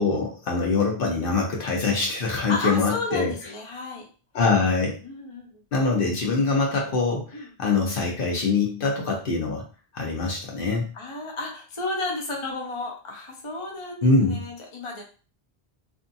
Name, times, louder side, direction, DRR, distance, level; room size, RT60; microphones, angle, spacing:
voice 1, 0.0-3.3 4.3-5.0 5.7-9.6 9.9-10.9 14.0-14.4, left 3 dB, 60° left, -1 dB, 0.9 m, -24 dB
voice 2, 2.5-4.1 5.0-5.6 7.3-7.5 10.9-15.0, left 2 dB, 35° left, 0 dB, 0.6 m, -32 dB
2.6 x 2.3 x 2.6 m, 0.37 s
omnidirectional pair, 1.1 m